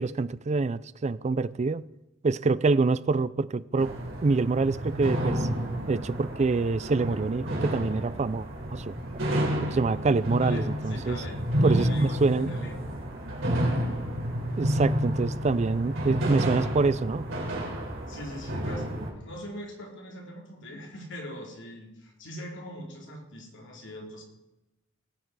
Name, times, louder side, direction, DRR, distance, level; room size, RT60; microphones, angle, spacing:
voice 1, 0.0-1.8 2.2-3.9 4.2-5.5 5.9-9.0 9.6-11.2 11.6-12.5 14.6-17.2, right 3 dB, 35° right, 0.4 m, -26 dB
sound 1, 3.8-19.1, equal, 70° right, 3.5 m, -30 dB
voice 2, 10.4-12.9 18.1-24.2, equal, 65° left, 2.9 m, -42 dB
18.0 x 8.0 x 4.8 m
head